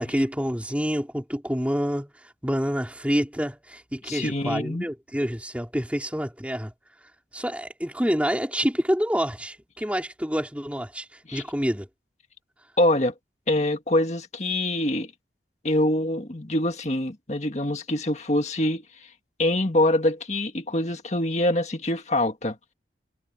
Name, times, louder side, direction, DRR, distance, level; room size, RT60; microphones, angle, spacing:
voice 1, 0.0-2.1 2.4-6.7 7.3-11.1 11.3-11.9, equal, 5° right, 4.4 m, -27 dB
voice 2, 4.0-4.8 11.3-11.4 12.8-13.1 13.5-15.1 15.6-18.8 19.4-22.6, left 1 dB, 40° left, 1.9 m, -24 dB
head